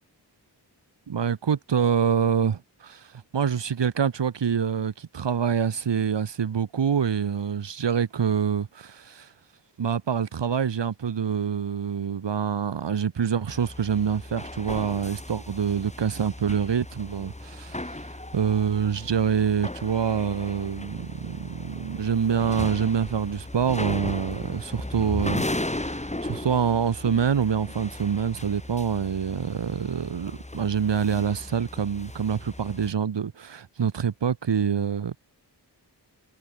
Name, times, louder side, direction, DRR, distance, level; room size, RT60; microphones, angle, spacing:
voice 1, 1.1-9.3 9.8-18.0 18.3-35.2, right 7 dB, 90° right, 1.6 m, -26 dB
sound 1, 13.5-32.9, left 1 dB, 15° left, 7.0 m, -36 dB
wide cardioid pair, 100°, 41 cm